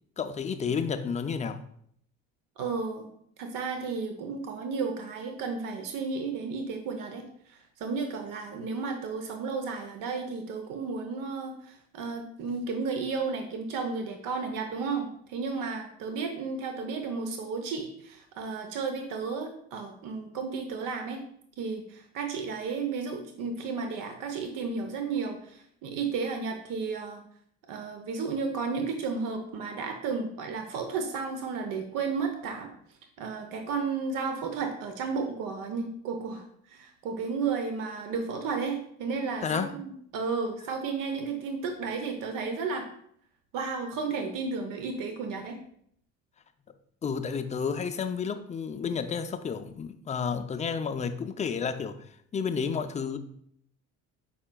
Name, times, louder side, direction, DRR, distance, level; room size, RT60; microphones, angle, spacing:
voice 1, 0.2-1.6 39.4-39.7 47.0-52.0 52.3-53.2, left 6 dB, 20° left, 0.3 m, -31 dB
voice 2, 2.6-3.1 3.4-21.2 21.6-27.2 27.7-32.7 33.2-42.8 43.5-45.6, right 4 dB, 70° right, 0.7 m, -33 dB
5.5 x 4.3 x 2.2 m
supercardioid pair, 85°, 34 cm